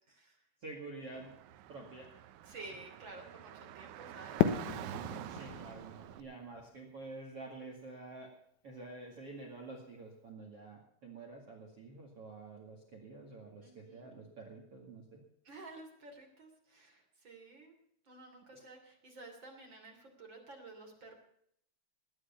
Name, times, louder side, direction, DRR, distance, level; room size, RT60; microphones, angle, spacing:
voice 1, 0.6-1.3 1.7-2.1 5.2-8.3 8.6-15.2 18.5-18.6, right 3 dB, 45° right, 1 dB, 2.1 m, -49 dB
Car / Traffic noise roadway noise, 1.2-6.2, right 12 dB, 80° right, 3.2 m, -47 dB
voice 2, 2.4-4.4 13.6-14.1 15.4-17.7 18.1-21.1, right 2 dB, 30° right, 2 dB, 2.9 m, -52 dB
Fireworks, 4.4-7.4, left 10 dB, 80° left, 3.5 m, -35 dB
19.5 x 9.9 x 5.8 m, 0.71 s
omnidirectional pair, 5.6 m